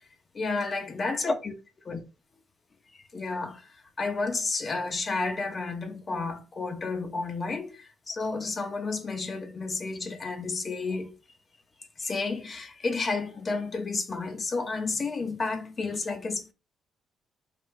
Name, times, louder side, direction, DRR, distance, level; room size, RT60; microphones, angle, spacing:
voice 1, 0.3-1.5 1.8-2.0 2.9-11.1 12.0-16.5, left 3 dB, 40° left, 1.0 m, -31 dB
5.0 x 2.9 x 3.3 m
cardioid pair, 90°, 0 cm